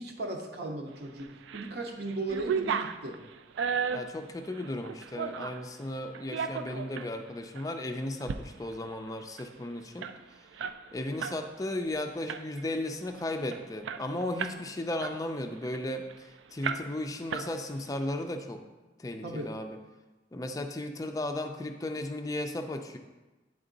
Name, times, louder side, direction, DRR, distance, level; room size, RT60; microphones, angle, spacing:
voice 1, 0.0-3.2 19.2-19.5, right 2 dB, 60° right, 1 dB, 0.8 m, -37 dB
sound 1, 1.2-1.7 2.1-5.6 6.1-7.1 7.6-7.7 8.1-8.4 8.7-8.8 9.1-11.4 11.7-11.9 12.3-12.7 13.2-13.3 13.5-14.6 15.0-16.2 16.6-17.0 17.3-17.9, right 6 dB, 85° right, 0.3 m, -34 dB
voice 2, 3.9-10.1 10.9-18.6 19.0-19.8 20.3-23.0, left 1 dB, 20° left, 5 dB, 0.4 m, -35 dB
9.1 x 3.6 x 3.9 m, 1.2 s
head